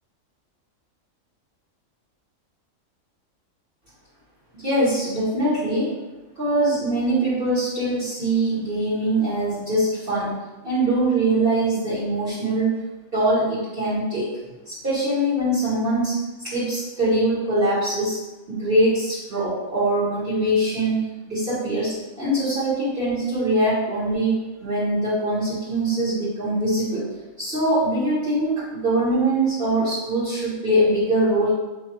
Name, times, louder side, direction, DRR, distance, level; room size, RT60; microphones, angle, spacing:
voice 1, 4.5-5.9 6.4-10.3 10.6-12.8 13.1-14.3 14.7-16.1 16.4-18.2 18.5-27.0 27.4-31.5, right 1 dB, 45° right, -10 dB, 1.3 m, -22 dB
3.6 x 2.8 x 4.4 m, 1.1 s
omnidirectional pair, 1.4 m